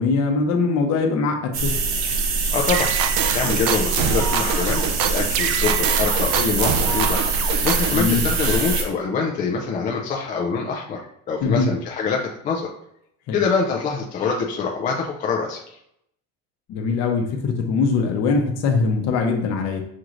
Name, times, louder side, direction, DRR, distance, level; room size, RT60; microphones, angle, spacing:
voice 1, 0.0-1.7 7.9-8.2 11.4-11.7 13.3-13.4 16.7-19.8, left 4 dB, 50° left, 4 dB, 0.8 m, -22 dB
sound 1, 1.5-8.8, right 3 dB, 85° right, 1.0 m, -24 dB
voice 2, 2.5-7.2 7.6-11.0 11.3-12.7 13.3-15.6, left 5 dB, 25° left, -1 dB, 0.3 m, -25 dB
sound 2, 2.7-8.0, right 7 dB, 55° right, 0.5 m, -24 dB
6.2 x 3.0 x 2.5 m, 0.74 s
cardioid pair, 160°, 35 cm